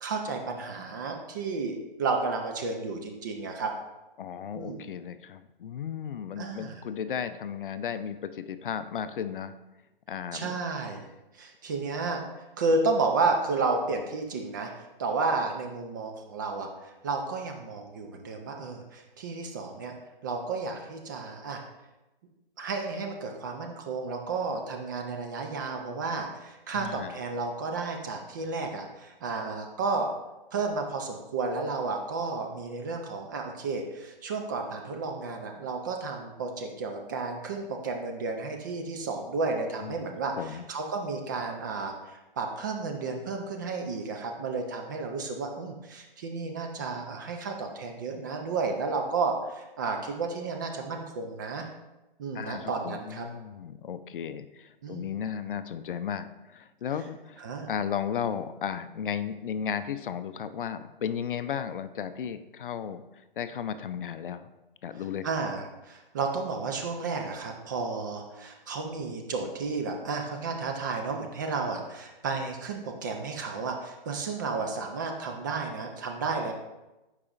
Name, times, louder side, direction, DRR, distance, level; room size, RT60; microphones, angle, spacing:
voice 1, 0.0-3.7 4.5-4.9 6.4-6.8 10.3-11.0 11.3-12.2 12.6-14.7 15.0-19.9 20.2-21.6 22.6-30.1 30.5-51.7 52.2-53.3 54.8-55.1 57.4-57.7 65.2-76.5, right 4 dB, 20° right, 3 dB, 0.3 m, -32 dB
voice 2, 4.2-9.5 10.1-10.6 26.7-27.2 39.8-40.0 40.4-40.6 52.3-57.4 57.7-63.0 63.4-64.5 64.8-65.3, left 8 dB, 65° left, 12 dB, 0.5 m, -34 dB
8.4 x 4.8 x 2.4 m, 1.0 s
figure-of-eight pair, 130°, 29 cm